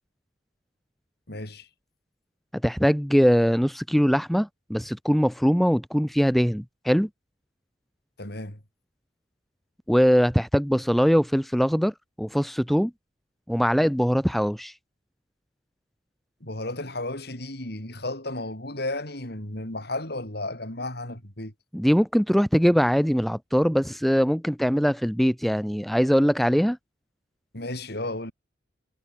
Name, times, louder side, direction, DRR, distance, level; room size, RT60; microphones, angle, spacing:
voice 1, 1.3-1.7 8.2-8.6 16.4-21.5 27.5-28.3, left 2 dB, 60° left, 6.6 m, -33 dB
voice 2, 2.6-7.1 9.9-12.9 13.5-14.7 21.7-26.8, equal, ahead, 0.8 m, -22 dB
head